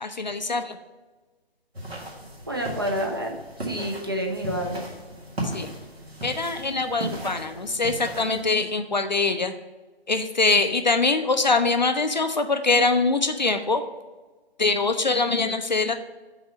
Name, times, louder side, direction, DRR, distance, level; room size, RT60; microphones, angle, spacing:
voice 1, 0.0-0.8 5.4-5.7 6.2-9.5 10.1-13.8 14.6-15.9, left 3 dB, 45° left, 7 dB, 0.4 m, -23 dB
sound 1, 1.7-8.4, right 1 dB, 75° right, 1.9 m, -36 dB
voice 2, 2.5-4.9, equal, 25° right, 1 dB, 0.5 m, -29 dB
5.4 x 4.0 x 6.1 m, 1.3 s
figure-of-eight pair, 145°, 31 cm